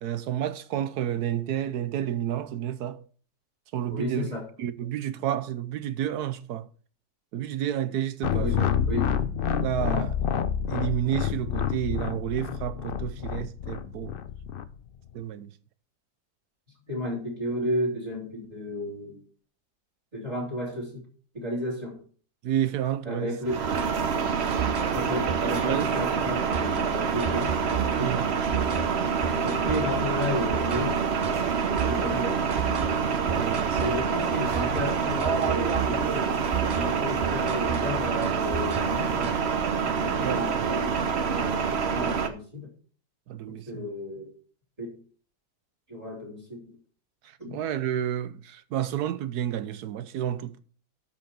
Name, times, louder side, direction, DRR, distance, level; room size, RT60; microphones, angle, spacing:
voice 1, 0.0-3.0 3.7-4.3 4.6-6.7 7.3-8.7 9.6-10.2 10.7-14.1 15.1-15.5 22.4-23.3 25.7-25.9 28.0-28.3 33.3-34.0 40.1-40.7 43.3-43.8 47.5-50.6, right 11 dB, 70° right, 1.2 m, -30 dB
voice 2, 3.9-4.5 8.4-9.1 16.9-19.2 20.1-21.1 21.3-22.0 23.0-23.8 24.9-27.6 28.0-28.2 29.4-31.1 31.8-32.5 33.8-36.5 36.7-39.4 39.8-42.7 43.5-44.3 44.8-45.0 45.9-46.8 47.4-47.6, left 1 dB, 20° right, 3.6 m, -33 dB
sound 1, 8.2-14.6, left 8 dB, 85° left, 0.5 m, -28 dB
sound 2, 23.4-42.3, right 6 dB, 50° right, 0.9 m, -27 dB
sound 3, 23.8-39.6, right 6 dB, 90° right, 0.3 m, -34 dB
12.5 x 5.9 x 4.2 m
omnidirectional pair, 1.8 m